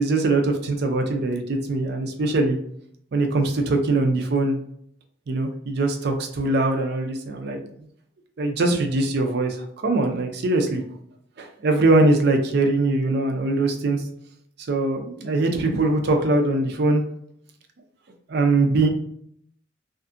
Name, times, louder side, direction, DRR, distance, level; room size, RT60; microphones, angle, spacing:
voice 1, 0.0-2.6 3.1-4.6 5.3-7.7 8.4-10.8 11.4-14.0 14.7-17.0 18.3-18.9, right 2 dB, 55° right, 4 dB, 0.4 m, -22 dB
2.5 x 2.4 x 2.5 m, 0.69 s
head